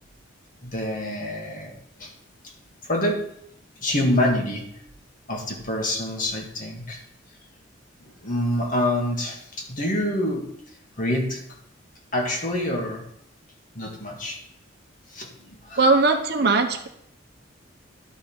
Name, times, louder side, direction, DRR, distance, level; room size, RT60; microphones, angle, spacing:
voice 1, 0.6-2.1 2.4-2.5 2.8-3.3 3.8-4.7 5.3-7.0 8.0-10.5 11.0-11.4 12.1-13.0 13.7-14.4 15.1-15.8, left 1 dB, 45° left, 0 dB, 1.9 m, -26 dB
voice 2, 15.8-16.9, right 3 dB, 55° right, 5 dB, 1.0 m, -19 dB
11.5 x 4.8 x 5.5 m, 0.70 s
head